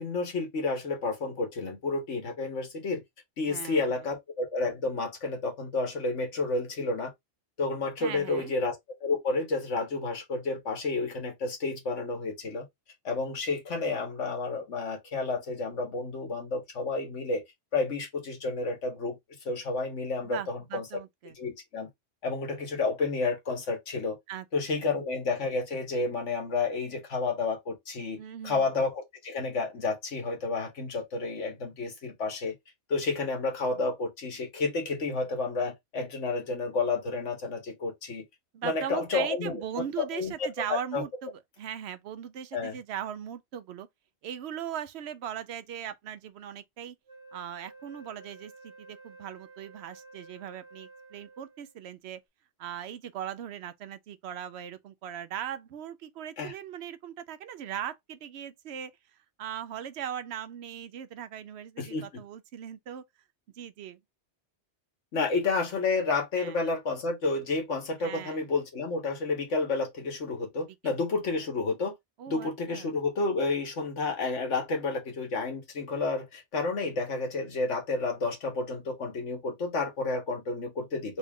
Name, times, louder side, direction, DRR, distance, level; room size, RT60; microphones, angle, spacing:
voice 1, 0.0-3.0 3.4-7.1 7.6-8.7 9.0-12.6 13.0-17.4 17.7-19.2 19.4-20.8 21.4-21.9 22.2-24.2 24.5-28.2 28.4-32.5 32.9-38.2 38.6-40.3 40.7-41.0 42.5-42.8 56.4-56.5 61.8-62.2 65.1-71.9 72.3-81.2, left 3 dB, 85° left, 1.6 m, -30 dB
voice 2, 3.5-3.9 8.0-8.5 20.2-21.3 24.3-24.5 24.8-24.9 28.2-28.6 38.5-41.3 41.6-43.9 44.2-46.9 47.3-52.2 52.6-58.9 59.4-63.0 63.6-64.0 66.4-66.6 68.0-68.4 70.8-71.0 72.2-72.9, right 9 dB, 70° right, 0.8 m, -39 dB
Wind instrument woodwind instrument, 47.1-51.8, right 3 dB, 35° right, 1.0 m, -51 dB
3.7 x 2.3 x 3.6 m
omnidirectional pair, 1.2 m